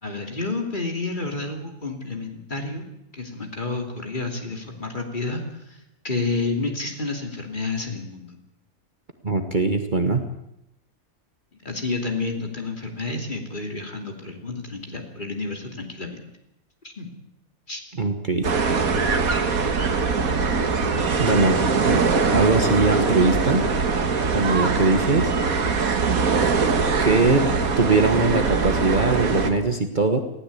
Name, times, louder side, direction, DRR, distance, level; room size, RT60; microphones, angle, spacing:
voice 1, 0.0-2.8 3.1-8.4 11.6-16.2 17.0-17.1 17.7-17.8, left 3 dB, 35° left, 3 dB, 3.0 m, -30 dB
voice 2, 9.2-10.3 18.0-18.5 21.2-21.6 21.9-22.1 22.3-23.7 24.3-25.3 27.0-30.2, right 3 dB, 35° right, 6 dB, 1.4 m, -21 dB
sound 1, 18.4-29.5, right 4 dB, 75° right, 2.0 m, -22 dB
19.5 x 16.0 x 8.4 m, 0.85 s
omnidirectional pair, 1.5 m